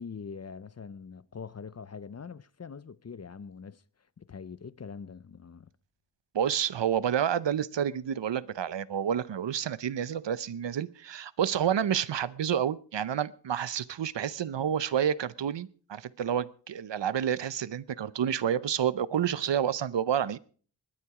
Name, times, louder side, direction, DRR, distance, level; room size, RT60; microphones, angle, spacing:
voice 1, 0.0-3.8 4.2-5.7, left 6 dB, 35° left, 0.5 m, -43 dB
voice 2, 6.3-20.4, right 9 dB, 80° right, 0.8 m, -29 dB
20.0 x 10.0 x 4.8 m
wide cardioid pair, 110°, 43 cm